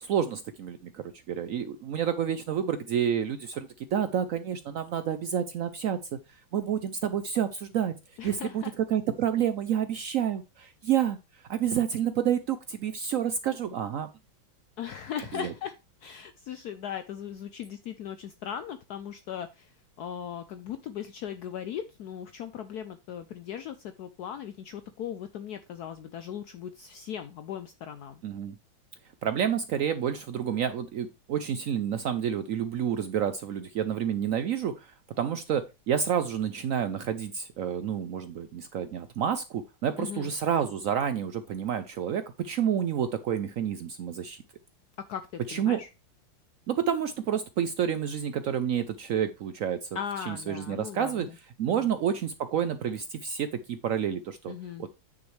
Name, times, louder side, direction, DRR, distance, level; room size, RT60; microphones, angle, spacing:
voice 1, 0.0-6.0 6.5-7.9 8.2-11.2 11.5-14.1 15.3-15.5 28.2-28.5 29.2-34.9 35.2-44.4 45.5-45.8 46.7-49.9 50.3-51.3 51.6-54.5 54.8-54.9, right 9 dB, 85° right, 11 dB, 0.7 m, -29 dB
voice 2, 8.2-8.7 14.8-15.7 16.0-19.7 20.0-28.2 40.0-40.3 45.1-45.9 49.9-51.4 51.7-51.9 54.5-54.9, left 9 dB, 70° left, 10 dB, 1.0 m, -38 dB
9.4 x 6.3 x 3.2 m, 0.26 s
omnidirectional pair, 2.1 m